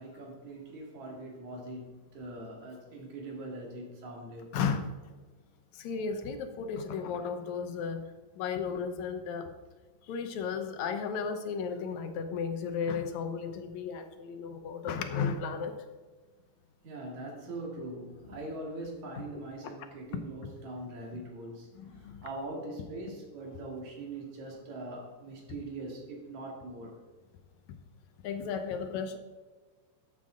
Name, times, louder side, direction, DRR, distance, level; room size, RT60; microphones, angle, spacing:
voice 1, 0.0-4.4 16.8-21.7 22.2-27.0, right 2 dB, 70° right, 0 dB, 3.4 m, -42 dB
voice 2, 4.5-4.9 5.7-8.0 8.4-9.5 10.1-15.7 19.3-19.4 20.1-20.2 21.7-22.2 28.2-29.2, left 6 dB, 75° left, 7 dB, 2.2 m, -34 dB
12.5 x 8.1 x 3.8 m, 1.4 s
omnidirectional pair, 3.4 m